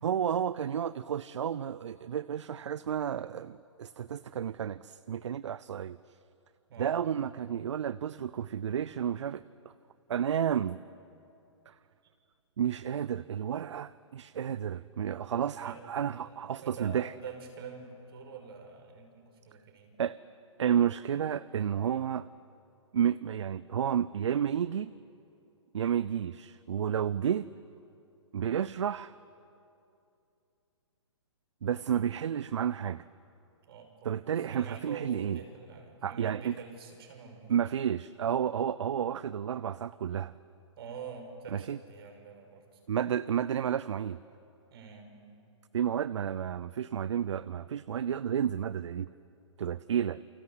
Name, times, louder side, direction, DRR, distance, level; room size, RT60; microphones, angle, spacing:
voice 1, 0.0-6.0 6.8-9.4 10.1-10.8 11.7-11.8 12.6-17.1 20.0-20.2 20.6-22.3 22.9-24.9 25.7-27.5 28.3-29.1 31.6-33.0 34.0-35.4 36.0-36.6 37.5-40.3 41.5-41.8 42.9-44.2 45.7-49.1 49.6-50.2, right 9 dB, 70° right, 17 dB, 0.6 m, -31 dB
voice 2, 15.4-15.8 16.1-16.3 16.6-20.0 33.7-37.5 40.8-42.8 44.7-45.1, right 5 dB, 50° right, 4 dB, 5.8 m, -46 dB
29.0 x 25.5 x 8.1 m, 2.7 s
hypercardioid pair, 140°, 16 cm